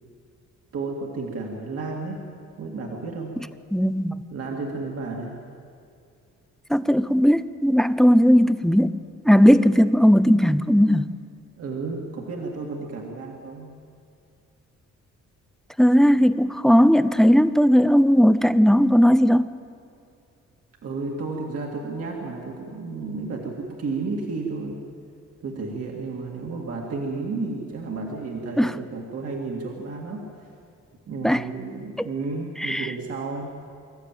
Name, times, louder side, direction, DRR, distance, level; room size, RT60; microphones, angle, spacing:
voice 1, 0.7-2.3 2.6-3.4 4.3-5.4 11.6-13.8 20.8-24.8 25.4-30.5 31.1-33.6, right 3 dB, 50° right, 0 dB, 2.1 m, -32 dB
voice 2, 3.7-4.1 6.7-8.9 9.3-11.1 15.8-19.5 28.6-28.7 31.2-31.4 32.7-32.9, equal, ahead, 14 dB, 0.4 m, -17 dB
25.0 x 14.5 x 9.1 m, 2.4 s
wide cardioid pair, 175°, 30 cm